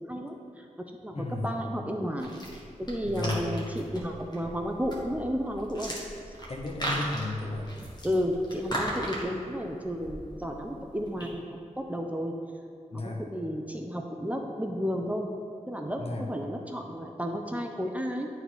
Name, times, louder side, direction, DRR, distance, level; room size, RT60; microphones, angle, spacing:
voice 1, 0.1-0.7 1.0-2.3 2.8-5.9 8.0-12.3 12.9-15.3 15.7-18.3, equal, 10° right, 2 dB, 0.6 m, -32 dB
voice 2, 1.1-1.5 3.0-3.4 6.5-7.7 12.9-13.2 16.0-16.3, left 2 dB, 50° left, 1 dB, 1.0 m, -33 dB
sound 1, 2.2-11.3, right 1 dB, 30° left, 1.6 m, -38 dB
9.3 x 4.0 x 4.6 m, 2.4 s
wide cardioid pair, 70°, 13 cm